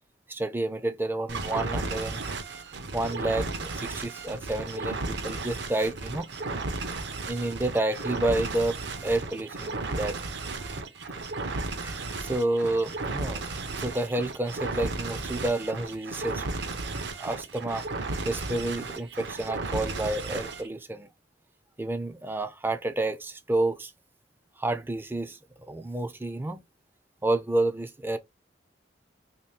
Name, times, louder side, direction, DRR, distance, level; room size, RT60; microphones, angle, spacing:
voice 1, 0.3-2.2 2.9-6.3 7.2-10.2 11.8-13.4 13.8-16.5 17.2-17.8 18.3-21.1 21.8-23.9 24.6-25.4 25.7-26.6 27.2-28.2, right 2 dB, 10° right, 0.4 m, -29 dB
sound 1, 1.3-20.7, right 3 dB, 65° right, 0.7 m, -34 dB
3.0 x 2.8 x 3.2 m
head